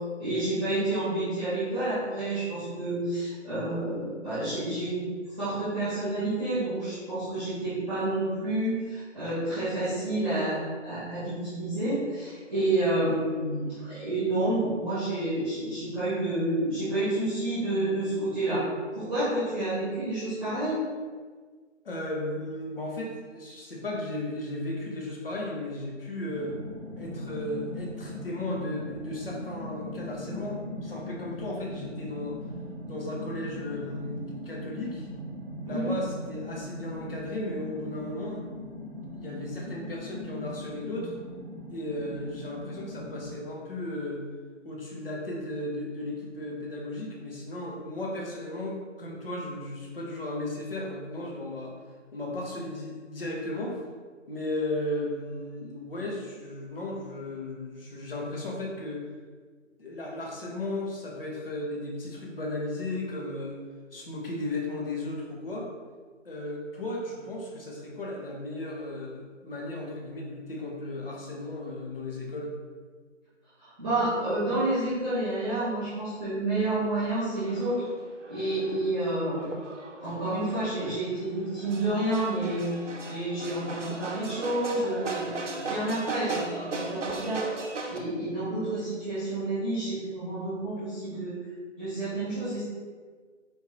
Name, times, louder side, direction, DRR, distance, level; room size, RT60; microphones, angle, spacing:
voice 1, 0.2-5.0 5.4-20.8 35.6-35.9 73.8-77.9 78.3-79.5 80.0-82.7 83.0-85.3 85.6-91.4 91.8-92.6, right 1 dB, 5° right, -16 dB, 1.4 m, -29 dB
voice 2, 21.8-26.5 27.0-32.4 32.9-35.1 35.6-38.4 39.1-41.2 41.7-44.2 44.6-51.7 52.1-53.8 54.3-59.0 59.8-63.6 63.9-65.7 66.2-72.5, left 1 dB, 50° left, -2 dB, 1.0 m, -35 dB
sound 1, 26.3-43.3, left 1 dB, 15° left, 0.7 m, -39 dB
sound 2, 77.4-88.0, right 3 dB, 70° right, 0.7 m, -38 dB
4.5 x 3.4 x 2.9 m, 1.5 s
figure-of-eight pair, 160°, 38 cm